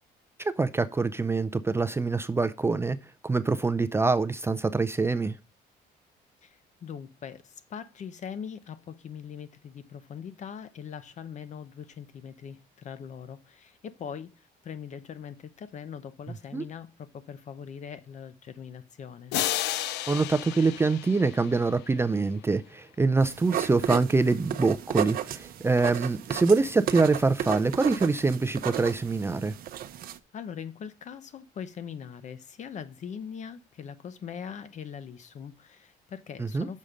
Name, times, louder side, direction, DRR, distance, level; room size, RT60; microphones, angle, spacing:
voice 1, 0.4-3.0 3.2-5.4 16.3-16.6 20.1-29.5 36.4-36.7, right 3 dB, 15° right, 0.4 m, -25 dB
voice 2, 6.4-19.3 30.3-36.8, left 7 dB, 45° left, 0.7 m, -41 dB
sound 1, 19.3-22.0, left 13 dB, 90° left, 0.5 m, -32 dB
sound 2, 23.2-30.2, right 10 dB, 60° right, 0.7 m, -34 dB
6.4 x 5.4 x 5.0 m
cardioid pair, 110°, 17 cm